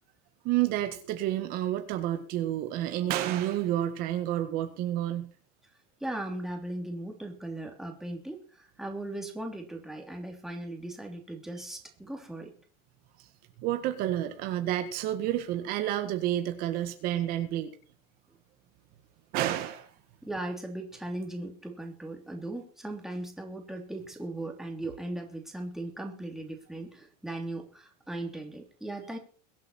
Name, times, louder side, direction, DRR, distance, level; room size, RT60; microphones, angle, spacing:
voice 1, 0.4-5.3 13.6-17.7 19.3-19.9, right 13 dB, 50° right, 7 dB, 1.7 m, -30 dB
voice 2, 6.0-12.5 20.2-29.2, right 1 dB, ahead, 1 dB, 3.1 m, -38 dB
23.0 x 8.5 x 4.4 m, 0.41 s
supercardioid pair, 145°, 20 cm